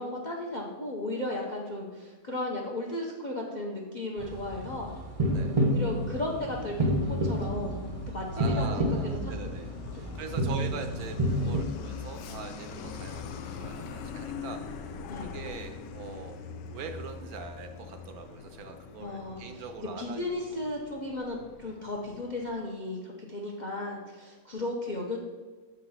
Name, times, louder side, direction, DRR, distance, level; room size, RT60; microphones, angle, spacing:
voice 1, 0.0-5.0 5.6-7.8 8.1-9.2 9.9-10.3 11.4-11.6 15.1-15.4 19.0-25.2, left 1 dB, 50° left, 0 dB, 0.5 m, -35 dB
sound 1, 4.2-11.6, right 1 dB, 40° right, 0.5 m, -30 dB
Truck, 6.4-22.6, left 4 dB, 90° left, 1.2 m, -43 dB
voice 2, 8.3-16.4 16.7-20.4, right 5 dB, 70° right, 7 dB, 0.9 m, -42 dB
6.7 x 3.9 x 5.6 m, 1.3 s
omnidirectional pair, 1.8 m